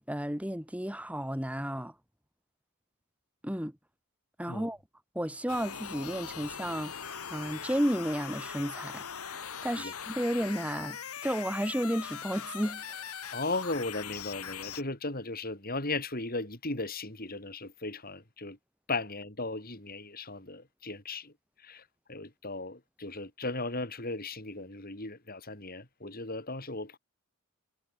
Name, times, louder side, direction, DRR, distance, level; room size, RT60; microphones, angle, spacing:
voice 1, 0.0-1.9 3.4-3.8 4.4-4.8 5.1-13.0, equal, 5° right, 4.5 m, -33 dB
sound 1, 5.5-14.8, left 7 dB, 80° left, 2.1 m, -41 dB
voice 2, 13.3-18.6 18.9-21.3 21.6-27.0, left 2 dB, 40° left, 4.6 m, -36 dB
head